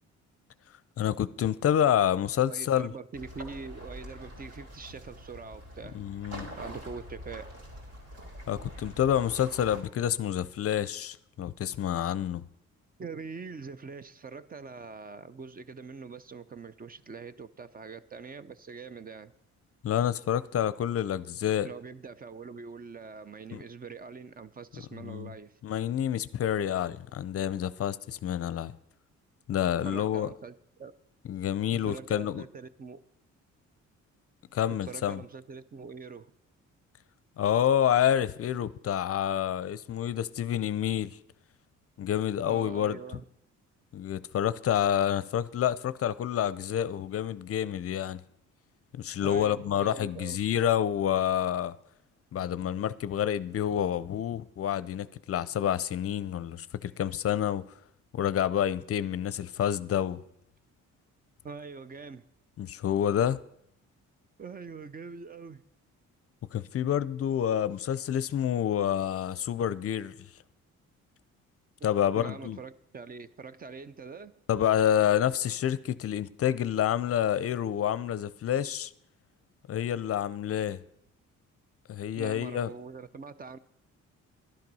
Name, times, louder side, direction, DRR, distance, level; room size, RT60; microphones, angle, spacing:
voice 1, 1.0-2.9 5.9-6.5 8.5-12.4 19.8-21.7 23.5-23.6 24.9-25.3 25.6-28.7 29.5-30.3 31.3-32.5 34.5-35.2 37.4-41.1 42.0-43.0 43.9-48.2 48.9-51.7 52.3-57.6 58.1-60.2 62.6-63.4 66.5-70.1 71.8-72.6 74.5-78.9 79.7-80.8 81.9-82.7, left 10 dB, 50° left, 0.6 m, -28 dB
voice 2, 2.5-6.0 6.6-7.5 13.0-19.3 21.6-25.5 29.8-30.9 31.7-33.0 34.9-36.3 42.5-43.2 49.2-50.4 61.4-62.2 64.4-65.6 71.8-74.3 82.1-83.6, right 5 dB, 30° right, 0.6 m, -43 dB
sound 1, 3.1-9.8, equal, 55° right, 3.3 m, -44 dB
11.5 x 10.5 x 5.5 m
cardioid pair, 90°, 30 cm